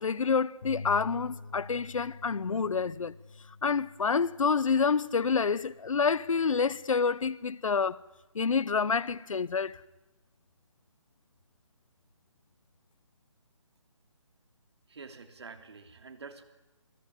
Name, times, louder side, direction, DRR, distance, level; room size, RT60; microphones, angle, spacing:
voice 1, 0.0-3.1 3.6-8.0 8.3-9.8, left 5 dB, 90° left, 0.8 m, -28 dB
sound 1, 0.6-6.9, left 3 dB, 55° left, 4.3 m, -47 dB
voice 2, 14.9-16.4, right 4 dB, 55° right, 3.1 m, -47 dB
27.5 x 17.5 x 9.9 m
hypercardioid pair, 175°, 16 cm